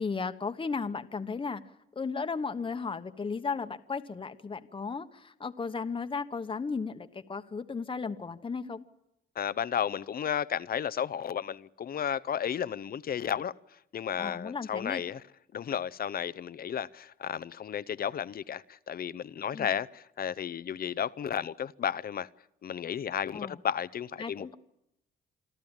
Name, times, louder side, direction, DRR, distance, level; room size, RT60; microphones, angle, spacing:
voice 1, 0.0-1.6 1.9-8.8 14.2-15.0 19.5-19.7 23.3-23.6 24.2-24.5, left 5 dB, 25° left, 1.2 m, -35 dB
voice 2, 9.4-13.5 13.9-15.2 15.5-22.3 22.6-24.5, left 8 dB, 50° left, 0.7 m, -33 dB
27.0 x 13.0 x 9.0 m
cardioid pair, 90°, 20 cm